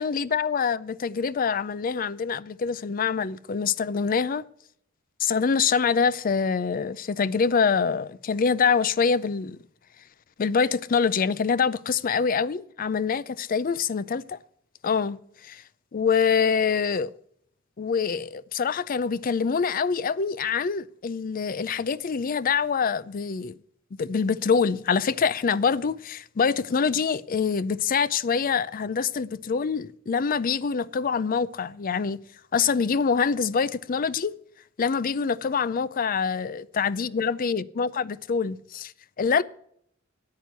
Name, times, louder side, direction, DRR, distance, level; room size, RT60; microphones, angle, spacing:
voice 1, 0.0-4.4 5.2-9.6 10.4-14.4 14.8-15.6 15.9-17.1 17.8-23.6 24.0-32.2 32.5-34.3 34.8-38.9 39.2-39.4, left 6 dB, 45° left, 0.5 m, -25 dB
9.5 x 9.0 x 8.1 m
head